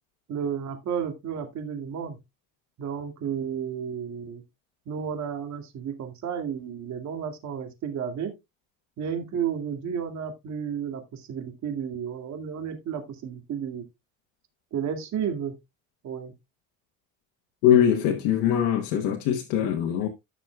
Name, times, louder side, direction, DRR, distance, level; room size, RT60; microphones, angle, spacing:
voice 1, 0.3-2.2 2.8-4.4 4.9-8.3 9.0-13.8 14.7-15.5 16.0-16.3, right 7 dB, 55° right, 2.2 m, -32 dB
voice 2, 17.6-20.1, left 9 dB, 90° left, 1.2 m, -22 dB
14.5 x 6.1 x 2.3 m
cardioid pair, 125°, 34 cm